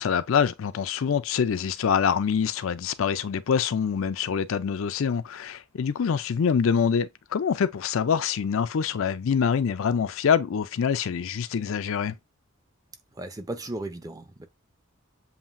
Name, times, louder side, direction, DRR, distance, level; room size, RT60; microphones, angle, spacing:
voice 1, 0.0-12.1, left 7 dB, 65° left, 0.4 m, -25 dB
voice 2, 13.1-14.5, right 2 dB, 15° right, 0.5 m, -35 dB
7.2 x 2.7 x 2.5 m
head